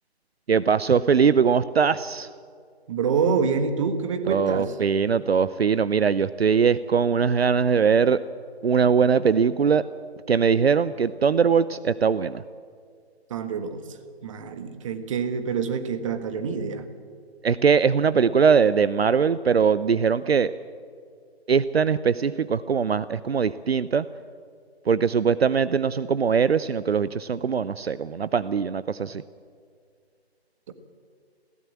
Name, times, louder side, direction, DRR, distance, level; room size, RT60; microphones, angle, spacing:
voice 1, 0.5-2.3 4.3-8.2 8.6-9.8 10.3-12.4 17.4-20.5 21.5-24.0 24.9-29.2, right 6 dB, 70° right, 16 dB, 0.7 m, -21 dB
voice 2, 2.9-4.8 13.3-13.9 14.2-16.9, right 5 dB, 30° right, 9 dB, 1.5 m, -26 dB
21.5 x 16.5 x 7.4 m, 2.1 s
figure-of-eight pair, 145°, 32 cm